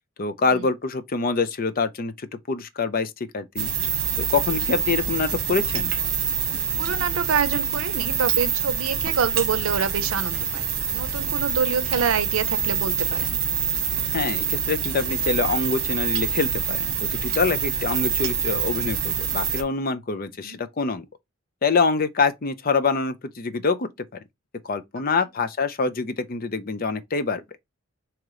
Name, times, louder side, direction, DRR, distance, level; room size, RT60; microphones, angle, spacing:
voice 1, 0.2-3.7 4.2-5.9 14.1-21.1 21.6-23.9 24.6-27.4, left 4 dB, 45° left, 0.6 m, -25 dB
sound 1, 3.6-19.6, right 7 dB, 50° right, 1.2 m, -26 dB
voice 2, 6.8-10.7 10.9-13.4 20.4-20.6 25.2-25.3, right 6 dB, 90° right, 0.6 m, -26 dB
3.7 x 3.0 x 4.8 m
head